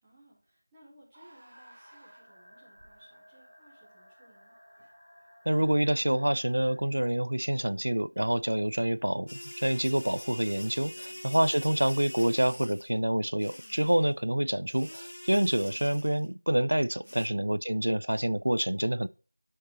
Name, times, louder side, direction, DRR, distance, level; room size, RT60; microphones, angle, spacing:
voice 1, 0.0-4.5 10.9-11.3 17.0-17.5, right 1 dB, 5° right, 0.8 m, -60 dB
sound 1, 1.1-3.1 4.8-4.9 6.6-7.0, right 1 dB, 30° right, 1.1 m, -58 dB
sound 2, 1.5-6.8, equal, 15° left, 2.0 m, -57 dB
voice 2, 5.5-19.1, right 1 dB, 70° right, 0.3 m, -27 dB
sound 3, 9.3-12.9 13.4-14.1 14.7-16.3 17.0-17.3, left 1 dB, 85° left, 0.4 m, -44 dB
6.4 x 4.1 x 4.1 m
figure-of-eight pair, 180°, 0 cm